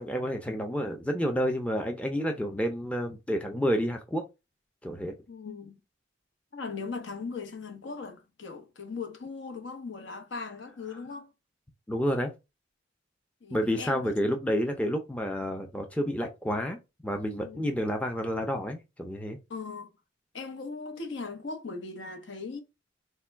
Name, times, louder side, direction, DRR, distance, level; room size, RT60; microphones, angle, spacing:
voice 1, 0.0-4.2 4.8-5.1 11.9-12.3 13.5-16.8 17.0-19.4, equal, 5° left, 0.5 m, -29 dB
voice 2, 5.3-5.8 6.5-11.3 13.4-14.2 17.4-17.7 19.5-19.9 20.3-22.6, left 4 dB, 70° left, 0.8 m, -39 dB
3.4 x 2.2 x 4.3 m
head